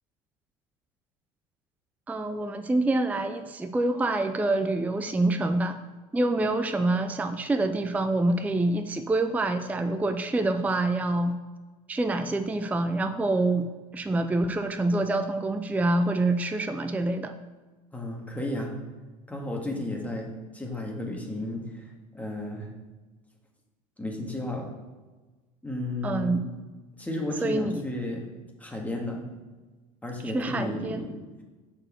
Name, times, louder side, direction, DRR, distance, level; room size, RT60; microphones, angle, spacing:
voice 1, 2.1-5.8 6.1-11.4 11.9-13.7 13.9-17.3 26.0-26.4 27.4-27.8 30.3-31.0, right 2 dB, 10° right, 8 dB, 0.5 m, -26 dB
voice 2, 17.9-18.7 19.3-22.7 24.0-24.7 25.6-26.4 27.0-28.3 28.6-29.2 30.0-31.2, left 1 dB, 10° left, 0 dB, 1.8 m, -33 dB
6.3 x 4.4 x 6.3 m, 1.3 s
hypercardioid pair, 90°, 19 cm